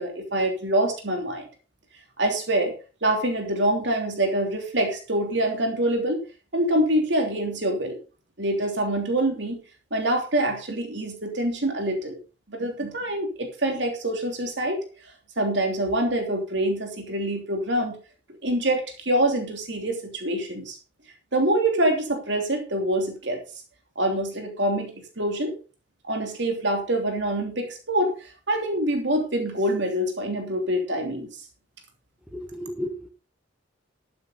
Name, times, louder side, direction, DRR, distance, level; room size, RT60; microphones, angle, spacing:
voice 1, 0.0-1.5 2.2-6.2 6.5-8.0 8.4-9.6 9.9-12.2 12.5-14.8 15.4-18.0 18.4-20.8 21.3-23.4 23.9-25.5 26.0-28.1 28.5-31.3, right 1 dB, 65° right, 3 dB, 3.2 m, -25 dB
voice 2, 32.3-33.1, equal, 5° right, 6 dB, 1.6 m, -33 dB
13.0 x 9.4 x 4.0 m, 0.34 s
head